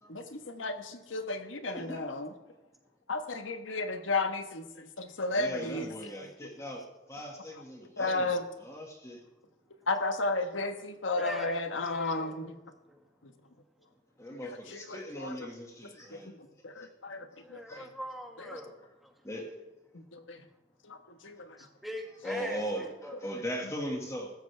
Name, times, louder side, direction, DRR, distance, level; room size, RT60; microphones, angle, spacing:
voice 1, 0.1-2.3 3.1-5.9 8.0-8.4 9.9-12.5 15.2-15.3 16.1-16.2 16.6-17.9 18.5-18.6 20.1-20.4 20.9-21.0 21.2-21.5, left 2 dB, 90° left, 7 dB, 1.4 m, -33 dB
voice 2, 1.7-2.1 5.3-9.2 14.2-16.3 16.8-16.9 17.3-17.9 18.8-18.9 19.2-19.5 22.2-24.3, equal, 15° left, 0 dB, 1.9 m, -39 dB
voice 3, 10.7-12.5 12.9-13.0 17.4-19.1 21.6-23.2, equal, ahead, 1 dB, 1.8 m, -43 dB
15.0 x 13.0 x 3.4 m, 1.0 s
head